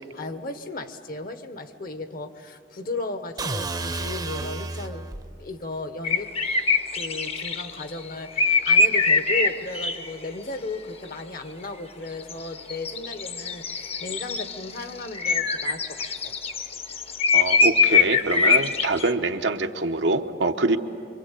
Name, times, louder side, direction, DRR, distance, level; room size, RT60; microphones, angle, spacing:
voice 1, 0.1-5.1 5.4-6.3 6.9-16.3, left 2 dB, 55° left, 9 dB, 1.3 m, -35 dB
sound 1, 3.4-5.3, right 3 dB, 20° right, 0.8 m, -31 dB
sound 2, 6.0-7.8 8.4-10.1 12.2-19.1, left 4 dB, 35° left, 0.9 m, -22 dB
voice 2, 17.3-20.8, right 3 dB, 80° right, 6 dB, 1.1 m, -24 dB
26.5 x 24.0 x 8.3 m, 2.6 s
head